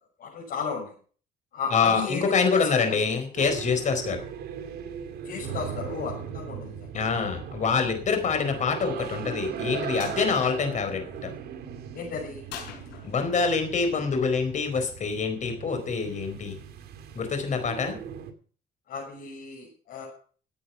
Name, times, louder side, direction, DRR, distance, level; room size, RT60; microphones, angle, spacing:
voice 1, 0.2-0.9 1.5-3.0 5.2-6.7 11.9-12.4 18.9-20.1, left 5 dB, 60° left, -4 dB, 6.4 m, -34 dB
voice 2, 1.7-4.2 6.9-11.3 13.0-16.6 17.1-18.0, left 5 dB, 45° left, 7 dB, 4.6 m, -26 dB
sound 1, 3.4-18.3, right 8 dB, 70° right, 2.2 m, -39 dB
sound 2, 10.0-10.2 12.5-13.4, left 8 dB, 85° left, 5.8 m, -41 dB
15.5 x 8.6 x 5.9 m, 0.43 s
cardioid pair, 110°, 17 cm